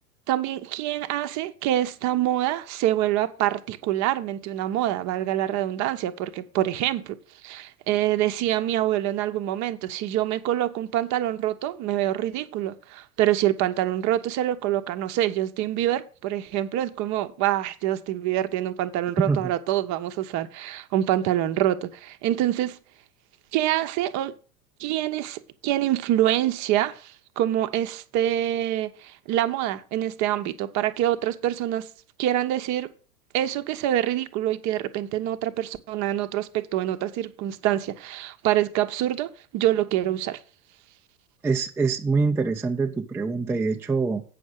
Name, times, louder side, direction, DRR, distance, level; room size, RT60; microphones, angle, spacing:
voice 1, 0.3-7.2 7.4-22.8 23.5-24.3 24.8-31.9 32.2-32.9 33.3-40.4, right 13 dB, 40° right, 0.9 m, -26 dB
voice 2, 41.4-44.2, right 4 dB, 5° right, 0.5 m, -24 dB
8.6 x 6.3 x 6.2 m
figure-of-eight pair, 85°, 46 cm